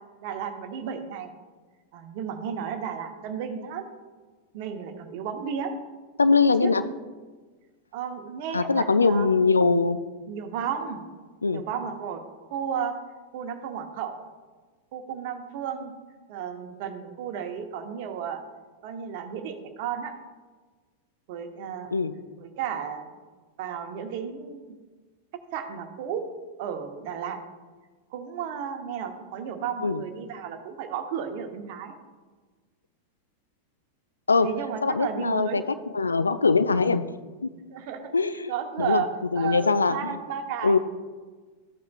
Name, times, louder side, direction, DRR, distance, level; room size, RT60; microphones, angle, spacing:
voice 1, 0.2-1.3 1.9-3.9 4.5-5.7 6.6-7.0 7.9-9.3 10.3-11.0 11.5-12.2 12.5-13.0 13.3-14.2 14.9-15.9 16.3-18.4 18.8-20.1 21.3-21.9 22.4-23.2 23.6-24.8 25.5-26.2 26.6-27.4 28.1-32.0 34.4-35.6 37.7-38.1 38.5-39.1 39.3-40.8, right 8 dB, 50° right, 6 dB, 1.0 m, -33 dB
voice 2, 6.2-6.9 8.5-10.0 11.4-11.6 21.9-22.1 29.8-30.0 34.3-34.5 34.8-37.0 37.4-37.5 38.1-38.5 38.8-39.0 39.3-40.2 40.6-40.8, left 4 dB, 75° left, 12 dB, 0.4 m, -22 dB
13.5 x 8.4 x 2.4 m, 1.4 s
figure-of-eight pair, 90°, 0 cm